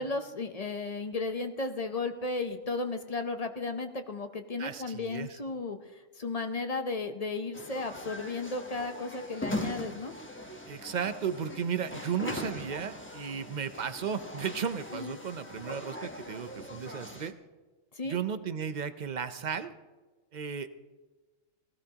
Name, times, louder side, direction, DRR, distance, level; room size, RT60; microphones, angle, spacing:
voice 1, 0.0-10.1 14.9-15.1 17.9-18.2, left 3 dB, 35° left, 7 dB, 0.7 m, -34 dB
voice 2, 4.6-5.4 10.7-17.3 18.1-19.7 20.3-20.7, right 7 dB, 45° right, 10 dB, 0.6 m, -34 dB
sound 1, 7.5-17.3, left 1 dB, 10° left, 0.9 m, -41 dB
19.0 x 15.5 x 2.9 m, 1.3 s
omnidirectional pair, 1.3 m